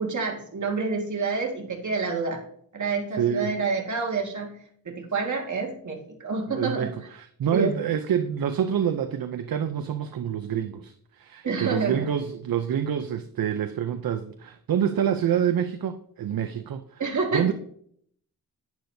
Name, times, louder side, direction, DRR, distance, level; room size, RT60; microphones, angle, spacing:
voice 1, 0.0-2.4 2.7-4.6 4.9-6.9 7.5-7.8 11.4-12.1 17.0-17.5, right 4 dB, 55° right, 2.0 m, -28 dB
voice 2, 3.2-3.5 6.5-17.0 17.3-17.5, right 9 dB, 75° right, 0.6 m, -27 dB
10.5 x 9.6 x 2.7 m
wide cardioid pair, 100°, 36 cm